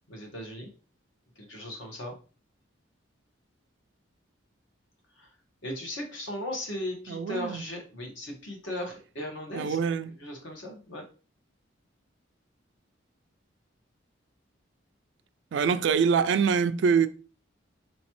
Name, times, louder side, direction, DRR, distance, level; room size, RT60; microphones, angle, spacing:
voice 1, 0.1-0.7 1.4-2.2 5.2-5.3 5.6-9.8 10.2-11.0, left 1 dB, 70° left, 1.3 m, -37 dB
voice 2, 7.1-7.6 9.5-10.2 15.5-17.1, right 6 dB, 65° right, 0.3 m, -24 dB
4.6 x 3.0 x 3.0 m
head